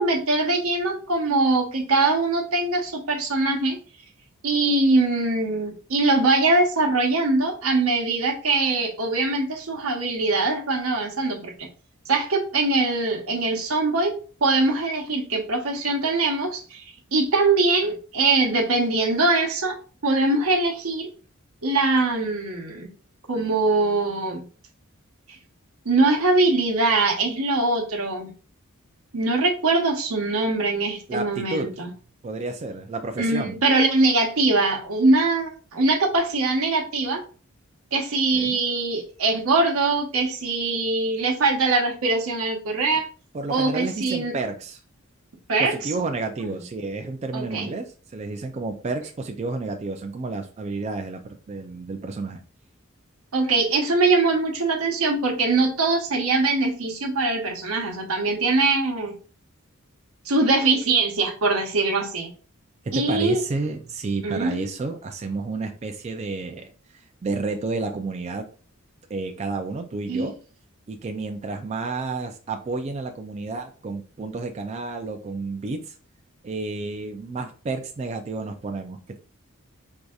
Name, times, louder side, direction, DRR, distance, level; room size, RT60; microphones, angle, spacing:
voice 1, 0.0-3.8 4.4-11.5 12.1-14.2 14.4-16.8 17.1-19.8 20.0-21.1 21.6-22.9 23.3-24.5 25.8-28.3 29.1-31.9 33.2-37.2 37.9-43.0 43.5-44.3 45.5-45.7 46.4-46.5 47.3-47.7 53.3-59.1 60.2-62.3 62.9-63.4 64.2-64.7 70.1-70.3, right 3 dB, 85° right, 1 dB, 0.9 m, -22 dB
voice 2, 31.1-31.7 32.2-33.6 38.3-38.6 43.3-44.8 45.6-52.4 62.8-66.7 67.2-68.4 69.1-70.3 70.9-75.9 76.4-79.2, right 3 dB, 30° right, 4 dB, 0.3 m, -31 dB
4.6 x 2.6 x 2.3 m, 0.38 s
head